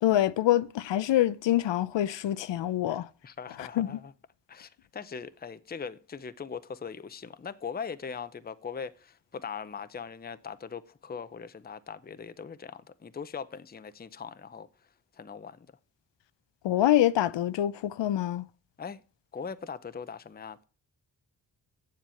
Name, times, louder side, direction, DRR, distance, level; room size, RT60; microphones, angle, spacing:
voice 1, 0.0-3.1 3.6-3.9 16.6-18.5, left 13 dB, 85° left, 0.6 m, -25 dB
voice 2, 2.9-4.1 4.5-14.7 15.1-15.7 18.8-19.0 19.3-20.6, left 6 dB, 20° left, 0.6 m, -40 dB
7.5 x 7.4 x 8.3 m
cardioid pair, 65°, 42 cm